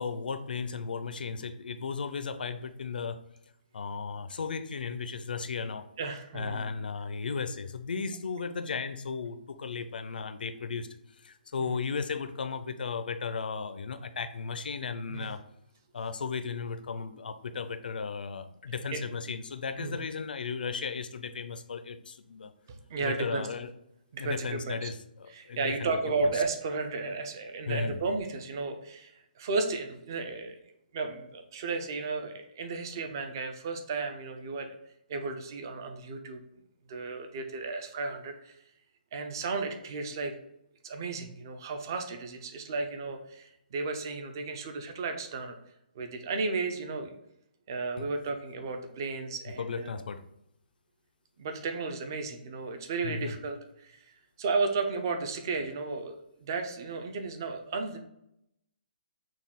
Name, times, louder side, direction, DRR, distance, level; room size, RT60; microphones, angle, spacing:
voice 1, 0.0-3.2 3.7-5.8 6.3-10.9 11.2-15.4 15.9-22.5 23.0-23.7 24.2-25.9 26.2-26.3 27.7-28.0 48.0-48.1 49.6-50.2 53.0-53.3, left 5 dB, 65° left, 11 dB, 0.4 m, -35 dB
voice 2, 6.0-6.7 11.6-11.8 15.1-15.3 18.9-19.1 19.8-20.0 22.7-23.5 24.1-24.9 25.3-30.6 30.9-34.8 35.1-36.4 36.9-38.6 39.1-40.3 40.8-45.6 45.9-47.1 47.7-50.0 51.4-58.0, right 3 dB, 25° right, 6 dB, 0.4 m, -34 dB
6.1 x 2.3 x 3.5 m, 0.79 s
hypercardioid pair, 180°, 5 cm